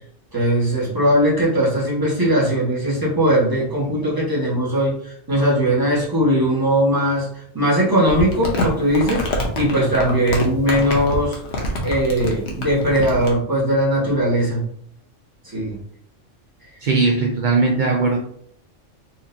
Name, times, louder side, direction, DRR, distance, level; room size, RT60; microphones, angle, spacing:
voice 1, 0.3-9.2 9.5-11.4 11.8-14.6 15.4-15.8, equal, 15° right, -6 dB, 1.3 m, -19 dB
Crumpling crinkling, 8.1-13.3, left 1 dB, 65° left, 1.0 m, -26 dB
voice 2, 16.8-18.2, right 3 dB, 60° right, 0 dB, 0.5 m, -18 dB
4.3 x 2.9 x 2.6 m, 0.64 s
omnidirectional pair, 1.3 m